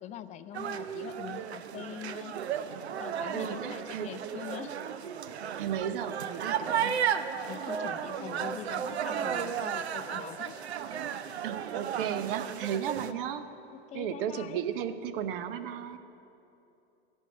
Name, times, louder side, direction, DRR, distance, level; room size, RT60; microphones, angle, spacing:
voice 1, 0.0-2.3 3.0-4.7 7.5-10.6 12.8-12.9 13.7-14.7, left 10 dB, 25° left, 12 dB, 0.4 m, -43 dB
sound 1, 0.5-13.1, right 8 dB, 85° right, 0.6 m, -34 dB
voice 2, 3.3-4.1 5.6-7.1 11.4-13.5 13.9-16.0, right 9 dB, 55° right, 12 dB, 0.9 m, -34 dB
14.5 x 6.4 x 9.2 m, 2.8 s
hypercardioid pair, 110°, 32 cm